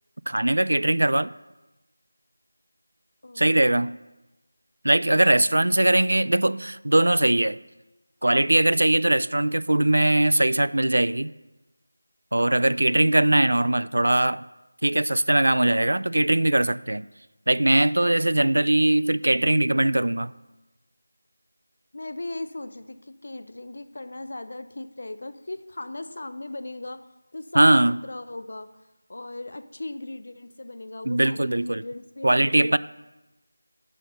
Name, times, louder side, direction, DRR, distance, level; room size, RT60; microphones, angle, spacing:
voice 1, 0.3-1.3 3.4-4.0 4.8-7.6 8.2-11.3 12.3-14.4 14.8-17.1 17.5-20.3 27.5-28.0 31.0-31.8 32.2-32.8, right 1 dB, 80° right, 18 dB, 0.3 m, -21 dB
voice 2, 3.2-3.9 5.6-5.7 12.8-13.2 21.9-27.1 27.3-27.8 28.0-28.7 29.1-32.8, left 2 dB, 50° left, 12 dB, 0.5 m, -38 dB
9.6 x 5.2 x 5.4 m, 1.1 s
figure-of-eight pair, 175°, 0 cm